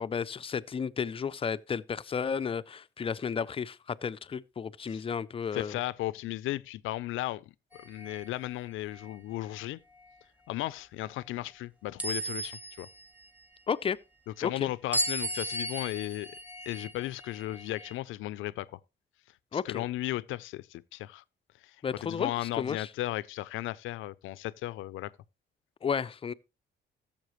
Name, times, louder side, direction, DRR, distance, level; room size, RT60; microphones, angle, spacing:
voice 1, 0.0-5.8 13.7-14.0 14.4-14.7 19.5-19.9 21.8-22.9 25.8-26.3, left 6 dB, 30° left, 0.4 m, -33 dB
voice 2, 5.5-9.8 10.5-12.9 14.3-18.8 19.5-21.2 21.6-21.8 22.0-25.1, left 16 dB, 85° left, 0.5 m, -35 dB
sound 1, 7.7-8.3 8.9-9.1 12.0-13.1 14.9-18.0, equal, 5° right, 1.7 m, -35 dB
14.0 x 7.1 x 3.1 m
cardioid pair, 90°, 20 cm